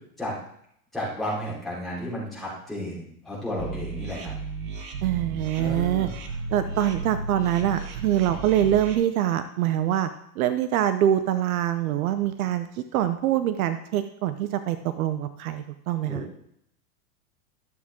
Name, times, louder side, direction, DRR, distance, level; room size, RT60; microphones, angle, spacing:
voice 1, 0.9-4.3 5.6-6.1 16.0-16.4, equal, ahead, -9 dB, 4.2 m, -33 dB
sound 1, 3.6-8.9, right 3 dB, 35° right, 1.3 m, -34 dB
voice 2, 5.0-6.1 6.5-10.1 10.4-16.2, right 11 dB, 65° right, 11 dB, 0.7 m, -24 dB
12.5 x 7.3 x 3.7 m, 0.71 s
supercardioid pair, 150°, 46 cm